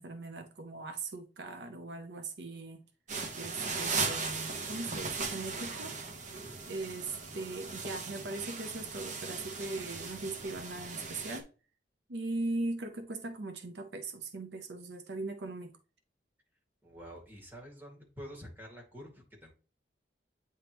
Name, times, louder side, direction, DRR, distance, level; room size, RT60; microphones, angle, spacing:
voice 1, 0.0-2.8 3.4-6.0 6.7-11.5 12.1-15.7, right 2 dB, 75° right, 0.7 m, -39 dB
sound 1, 3.1-11.4, right 4 dB, 45° right, 1.0 m, -38 dB
voice 2, 16.8-19.5, equal, 10° right, 2.1 m, -48 dB
8.8 x 3.5 x 3.0 m
head